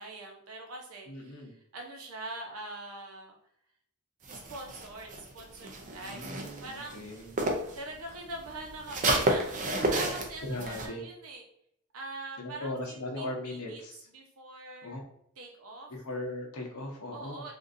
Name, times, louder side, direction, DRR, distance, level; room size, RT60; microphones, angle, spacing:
voice 1, 0.0-3.3 4.3-7.0 7.8-11.4 11.9-13.8 14.1-15.0 15.4-15.9 17.1-17.5, right 2 dB, 75° right, 1 dB, 0.8 m, -43 dB
voice 2, 1.1-1.5 6.0-7.3 9.7-10.0 10.4-11.0 12.4-14.0 14.8-15.0 15.9-17.4, left 1 dB, 75° left, 1 dB, 0.8 m, -38 dB
sound 1, 4.2-7.8 8.1-10.9, right 2 dB, 35° right, 0.4 m, -31 dB
3.7 x 2.5 x 2.6 m, 0.72 s
head